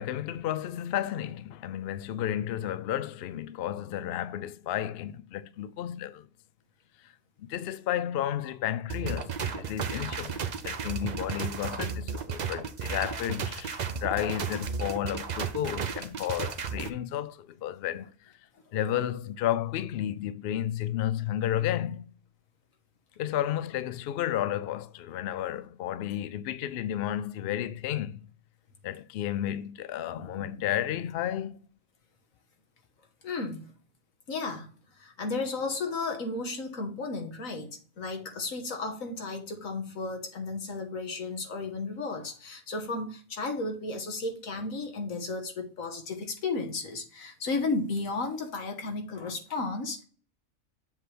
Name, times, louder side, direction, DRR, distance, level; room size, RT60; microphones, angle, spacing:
voice 1, 0.0-6.3 7.4-18.3 18.7-22.1 23.2-28.2 28.8-31.6, left 11 dB, 65° left, 0.6 m, -32 dB
sound 1, 8.9-16.9, right 6 dB, 45° right, 0.6 m, -34 dB
voice 2, 30.1-30.6 33.2-33.7 34.3-34.7 34.9-37.7 38.0-50.0, left 3 dB, 80° left, 1.7 m, -34 dB
7.4 x 3.3 x 5.9 m
omnidirectional pair, 1.4 m